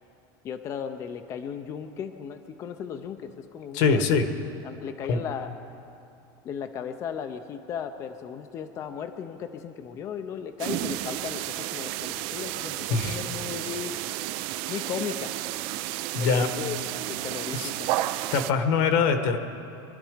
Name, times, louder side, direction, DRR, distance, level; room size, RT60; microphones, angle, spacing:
voice 1, 0.4-4.0 4.6-5.5 6.4-13.9 14.7-15.3 16.2-17.9, left 7 dB, 25° left, 7 dB, 0.6 m, -36 dB
voice 2, 3.7-4.3 5.1-5.2 12.9-13.2 16.1-16.5 17.5-17.7 18.3-19.4, left 5 dB, 55° left, 7 dB, 1.3 m, -23 dB
sound 1, 10.6-18.5, right 15 dB, 45° right, 0.5 m, -32 dB
24.0 x 11.5 x 5.0 m, 2.7 s
supercardioid pair, 170°, 12 cm